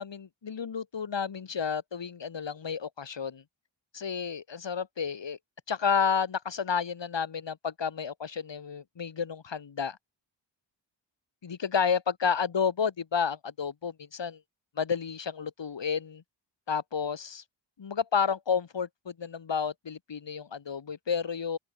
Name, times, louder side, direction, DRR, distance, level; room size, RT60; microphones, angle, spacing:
voice 1, 0.0-3.4 3.9-5.4 5.7-10.0 11.4-14.4 14.8-16.2 16.7-17.4 17.8-21.6, left 6 dB, 65° left, 2.0 m, -31 dB
open air
cardioid pair, 55°, 47 cm